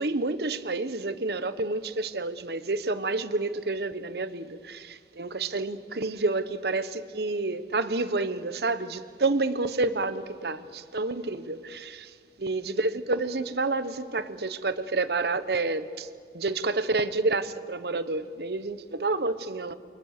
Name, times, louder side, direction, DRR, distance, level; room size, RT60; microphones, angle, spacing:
voice 1, 0.0-12.1 12.4-16.1 16.3-19.7, right 3 dB, 65° right, 1.1 m, -29 dB
29.0 x 23.5 x 6.7 m
head